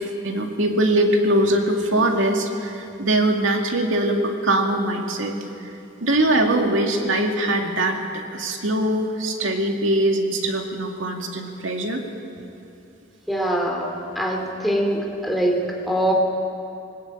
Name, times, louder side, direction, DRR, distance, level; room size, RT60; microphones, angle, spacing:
voice 1, 0.0-5.3 6.0-12.0, right 1 dB, 80° right, 3 dB, 2.3 m, -22 dB
voice 2, 13.3-16.1, right 1 dB, ahead, 0 dB, 2.9 m, -23 dB
20.0 x 19.5 x 9.0 m, 2.7 s
head